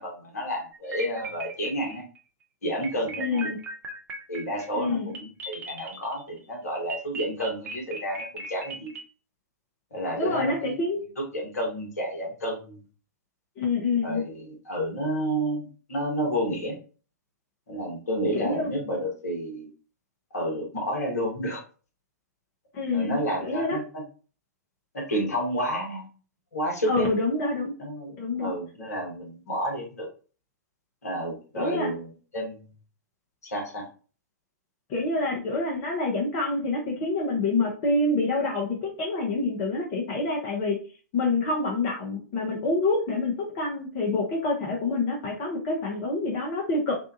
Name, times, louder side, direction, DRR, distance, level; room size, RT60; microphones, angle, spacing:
voice 1, 0.0-2.0 2.6-3.5 4.3-8.9 9.9-10.7 11.2-12.8 14.0-16.8 17.7-19.7 20.3-21.6 22.9-24.0 24.9-26.1 26.5-27.1 27.8-30.1 31.0-32.6 33.4-33.9, equal, 65° left, 0 dB, 1.1 m, -30 dB
sound 1, 0.7-2.2 2.8-6.4 6.9-9.0, right 3 dB, 20° right, 0.6 m, -38 dB
voice 2, 3.2-3.6 4.7-5.1 10.2-11.1 13.6-14.2 18.3-18.7 22.7-23.8 26.9-27.7 28.2-28.6 31.6-31.9 34.9-40.8 41.1-47.0, left 3 dB, 35° left, -2 dB, 0.8 m, -27 dB
2.6 x 2.2 x 2.6 m, 0.37 s
figure-of-eight pair, 105°, 9 cm